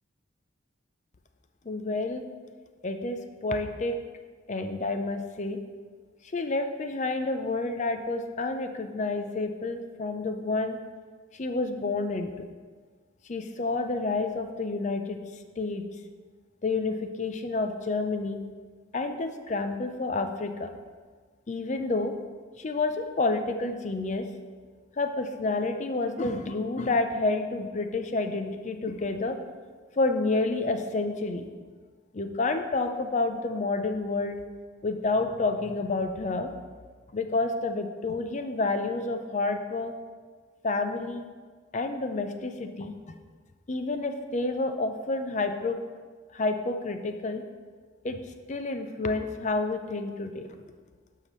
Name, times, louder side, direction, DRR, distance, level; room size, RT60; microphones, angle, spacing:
voice 1, 1.6-2.2 2.8-3.9 4.5-5.6 6.3-10.8 11.3-12.3 13.3-15.2 15.6-15.8 16.6-18.4 18.9-20.8 21.5-22.1 22.6-24.3 25.0-29.4 30.0-31.5 32.1-34.4 34.8-36.5 37.1-39.9 40.6-41.2 41.7-42.9 43.7-45.8 46.3-47.4 48.0-48.2 48.5-50.5, left 3 dB, 40° left, 7 dB, 0.5 m, -29 dB
11.5 x 5.7 x 3.1 m, 1.5 s
head